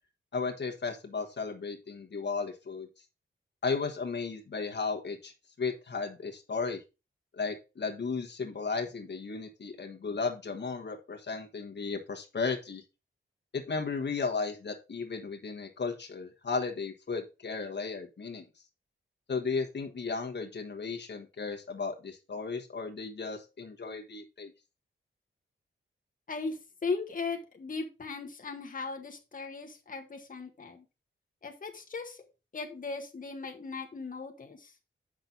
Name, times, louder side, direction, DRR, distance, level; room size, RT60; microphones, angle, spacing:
voice 1, 0.3-2.9 3.6-5.3 5.6-6.8 7.3-12.8 13.5-18.4 19.3-24.5, left 4 dB, 55° left, 2 dB, 1.3 m, -35 dB
voice 2, 26.3-30.8 31.4-32.2 32.5-34.7, left 4 dB, 40° left, 2 dB, 1.3 m, -38 dB
7.7 x 6.0 x 3.9 m, 0.29 s
wide cardioid pair, 105°, 21 cm